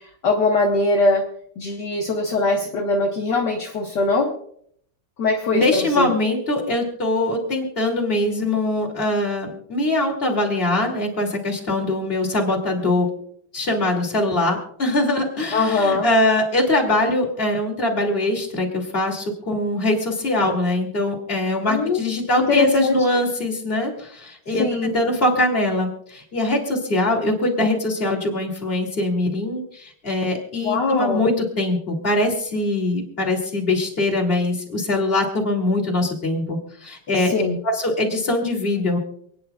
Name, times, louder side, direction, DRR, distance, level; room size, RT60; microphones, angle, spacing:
voice 1, 0.2-1.2 1.6-4.3 5.2-6.1 15.5-16.1 21.7-22.0 22.5-23.0 24.6-24.9 30.6-31.3 37.3-37.6, left 3 dB, 55° left, 0 dB, 1.8 m, -21 dB
voice 2, 5.5-13.1 13.5-37.3 37.6-39.0, left 1 dB, 25° left, 0 dB, 2.9 m, -22 dB
28.5 x 10.0 x 2.4 m, 0.65 s
omnidirectional pair, 2.4 m